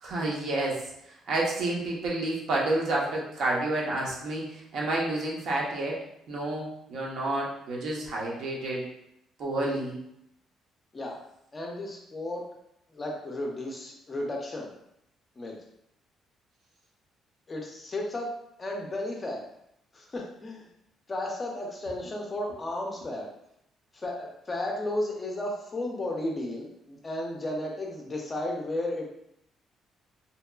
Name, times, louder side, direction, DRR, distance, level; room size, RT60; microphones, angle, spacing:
voice 1, 0.0-6.0 6.3-8.9 9.4-10.0, right 2 dB, 60° right, -3 dB, 0.7 m, -30 dB
voice 2, 11.5-12.4 12.9-14.7 15.4-15.5 17.5-18.3 18.6-19.4 19.9-20.7 21.1-23.3 23.9-29.1, left 1 dB, 25° left, 0 dB, 0.4 m, -33 dB
2.7 x 2.2 x 2.2 m, 0.77 s
cardioid pair, 140°, 0 cm